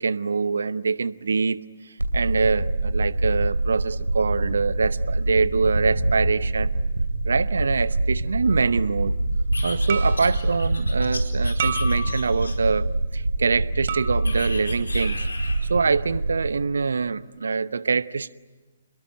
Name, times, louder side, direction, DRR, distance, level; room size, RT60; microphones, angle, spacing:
voice 1, 0.0-1.6 2.1-6.7 7.2-9.2 9.6-18.3, right 4 dB, 70° right, 0.9 m, -24 dB
sound 1, 2.0-16.5, right 2 dB, 90° right, 2.7 m, -25 dB
sound 2, 8.5-8.7 9.9-10.4 11.6-12.5 13.9-14.5, right 5 dB, 50° right, 3.0 m, -32 dB
sound 3, 9.5-12.8 14.2-15.7, left 2 dB, 80° left, 4.5 m, -36 dB
29.0 x 21.5 x 9.2 m
figure-of-eight pair, 130°, 0 cm